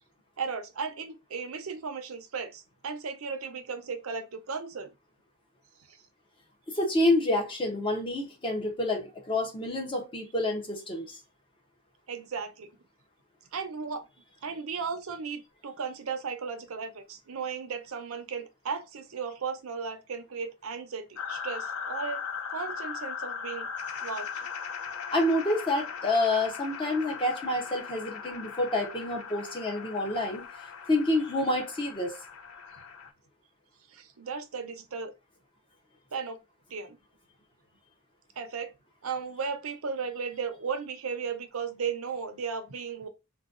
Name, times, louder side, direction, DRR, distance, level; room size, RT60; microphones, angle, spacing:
voice 1, 0.4-4.9 5.9-6.0 12.1-12.7 13.5-14.0 14.4-22.2 22.5-23.7 24.0-24.5 33.9-35.1 36.1-36.4 36.7-37.0 38.4-38.7 39.0-43.1, right 5 dB, 75° right, 0.6 m, -35 dB
voice 2, 6.7-11.2 25.1-30.5 30.9-32.1, left 1 dB, 25° left, 0.7 m, -28 dB
sound 1, 21.2-33.1, left 6 dB, 90° left, 0.5 m, -39 dB
3.8 x 2.2 x 2.4 m
head